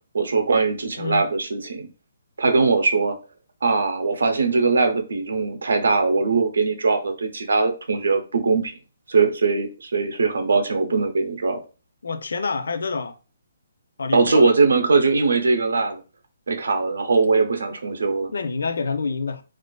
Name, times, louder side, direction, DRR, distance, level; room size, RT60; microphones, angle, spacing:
voice 1, 0.1-1.9 2.4-3.2 3.6-8.7 9.1-11.6 14.1-16.0 16.5-18.3, right 4 dB, 85° right, 0.6 m, -21 dB
voice 2, 12.0-13.2 14.0-14.5 18.3-19.4, left 4 dB, 75° left, 0.4 m, -27 dB
2.4 x 2.4 x 2.3 m
hypercardioid pair, 175°, 0 cm